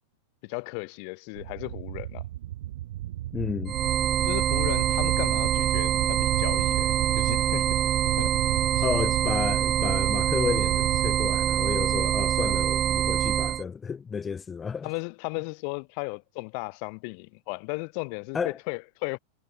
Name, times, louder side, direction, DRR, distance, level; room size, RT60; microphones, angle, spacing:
voice 1, 0.4-2.2 4.2-7.8 8.2-8.3 8.8-8.9 14.8-19.2, left 40 dB or more, 45° left, 2.9 m, -35 dB
sound 1, 1.4-12.7, right 14 dB, 55° right, 4.6 m, -34 dB
voice 2, 3.3-3.7 8.8-14.9 18.3-18.6, left 6 dB, 20° left, 1.6 m, -31 dB
sound 2, 3.7-13.6, right 11 dB, 30° right, 0.7 m, -25 dB
figure-of-eight pair, 90°, 0 cm